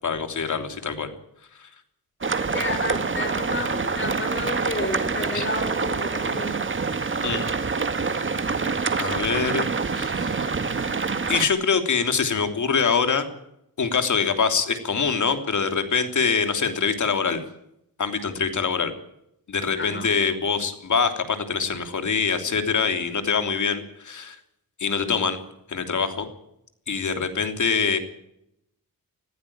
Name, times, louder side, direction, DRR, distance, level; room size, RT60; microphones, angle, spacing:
voice 1, 0.0-1.1 1.6-1.7 5.3-5.4 7.2-7.4 8.9-9.7 9.9-10.7 11.3-13.3 13.8-17.4 18.0-18.9 19.5-24.4 24.8-25.4 25.7-26.3 26.9-28.0, left 5 dB, 55° left, 7 dB, 3.2 m, -24 dB
sound 1, 2.2-11.5, right 4 dB, 35° right, 1.9 m, -26 dB
voice 2, 2.5-6.6 19.8-20.1 27.3-27.4, left 2 dB, 35° left, 7 dB, 5.9 m, -31 dB
20.5 x 15.0 x 8.8 m, 0.78 s
wide cardioid pair, 105°, 35 cm